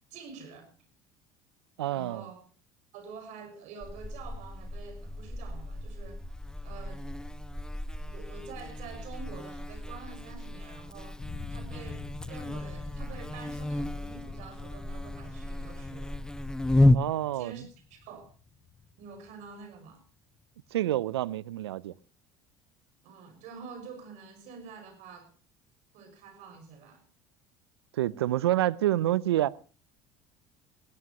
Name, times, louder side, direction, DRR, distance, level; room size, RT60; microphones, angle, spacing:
voice 1, 0.1-0.7 1.9-2.4 2.9-6.3 6.6-7.0 8.1-11.2 11.5-16.3 16.8-16.9 17.3-18.3 19.0-20.0 23.0-25.3 25.9-27.0, right 5 dB, 65° right, 6.0 m, -47 dB
voice 2, 1.8-2.3 16.9-17.6 20.7-21.9 27.9-29.6, right 13 dB, 90° right, 0.6 m, -28 dB
Buzz, 3.8-17.0, left 1 dB, 5° left, 1.0 m, -32 dB
sound 1, 11.2-20.0, left 4 dB, 25° left, 3.5 m, -47 dB
21.0 x 17.0 x 3.0 m
hypercardioid pair, 70°, 13 cm